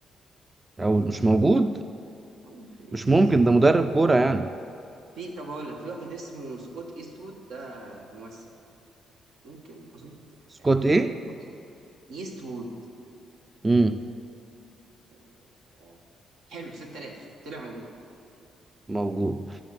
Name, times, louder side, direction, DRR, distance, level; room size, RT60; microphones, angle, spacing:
voice 1, 0.8-1.8 2.9-4.5 10.6-11.1 13.6-14.0 18.9-19.5, right 2 dB, 20° right, 10 dB, 0.4 m, -21 dB
voice 2, 2.4-3.3 5.1-8.5 9.4-10.2 10.6-10.7 11.1-11.6 12.1-12.7 15.1-15.3 15.7-16.0 16.5-17.9, right 2 dB, 85° right, 1 dB, 1.7 m, -40 dB
11.0 x 7.2 x 7.5 m, 2.6 s
cardioid pair, 90°, 0 cm